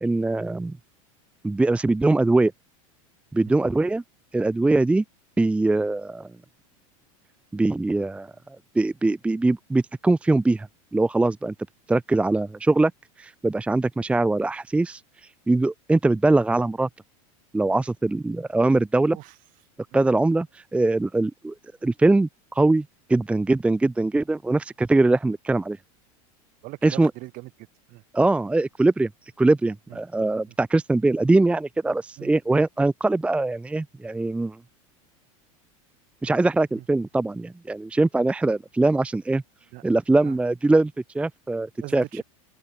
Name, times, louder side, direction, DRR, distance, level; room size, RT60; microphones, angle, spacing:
voice 1, 0.0-0.8 1.4-2.5 3.3-4.0 4.3-5.0 5.4-6.3 7.5-8.3 8.7-10.7 10.9-11.5 11.9-12.9 13.2-15.0 15.5-16.9 17.5-19.2 19.9-21.5 21.8-22.8 23.1-25.8 26.8-27.1 28.1-29.1 29.4-34.6 36.2-39.4 39.8-42.0, right 2 dB, 5° right, 0.7 m, -22 dB
voice 2, 26.6-28.0 29.9-30.0 30.5-30.6 31.9-32.6 36.7-36.8 39.7-39.8 40.2-40.4 41.8-42.2, right 21 dB, 50° right, 4.4 m, -41 dB
supercardioid pair, 125°, 18 cm